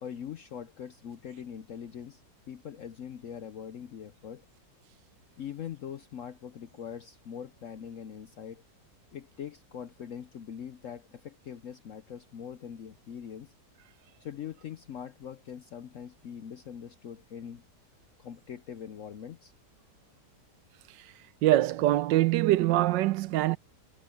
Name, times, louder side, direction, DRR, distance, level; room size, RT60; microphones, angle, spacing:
voice 1, 0.0-2.2 2.5-4.4 5.4-8.6 9.1-13.5 14.2-17.6 18.2-19.5, left 8 dB, 60° left, 0.8 m, -42 dB
voice 2, 21.4-23.6, right 15 dB, 90° right, 1.3 m, -24 dB
omnidirectional pair, 1.9 m